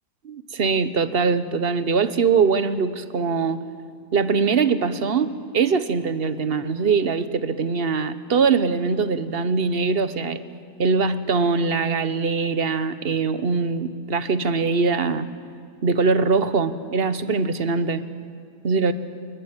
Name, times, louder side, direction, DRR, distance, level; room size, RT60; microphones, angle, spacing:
voice 1, 0.2-3.6 4.1-10.4 10.8-15.3 15.8-18.0 18.6-18.9, right 5 dB, 40° right, 12 dB, 1.1 m, -22 dB
28.5 x 21.5 x 8.9 m, 2.2 s
omnidirectional pair, 1.7 m